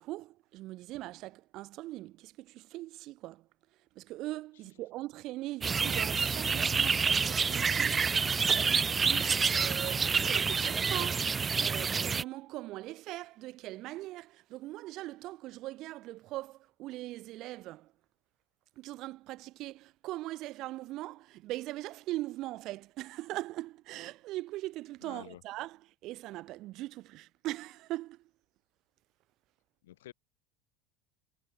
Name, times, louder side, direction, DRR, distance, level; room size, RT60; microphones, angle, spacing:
voice 1, 0.0-3.5 4.0-17.9 18.8-28.2, right 17 dB, 50° right, 5.4 m, -41 dB
sound 1, 5.6-12.2, right 5 dB, 25° right, 1.5 m, -28 dB
voice 2, 25.0-25.4 29.8-30.1, left 14 dB, 70° left, 6.1 m, -49 dB
figure-of-eight pair, 75°, 0 cm